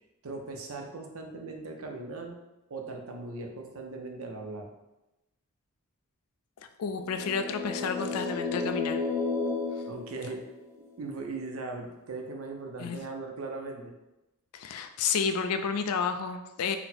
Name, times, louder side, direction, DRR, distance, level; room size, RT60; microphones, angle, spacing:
voice 1, 0.2-2.4 2.7-4.7 9.9-10.4 11.0-13.9, right 3 dB, 70° right, 3 dB, 0.6 m, -39 dB
voice 2, 6.8-9.0 9.7-9.9 12.8-13.0 14.5-16.8, left 6 dB, 85° left, 8 dB, 0.4 m, -31 dB
sound 1, 7.0-10.8, left 4 dB, 10° left, 0.4 m, -32 dB
4.0 x 2.1 x 4.2 m, 0.98 s
head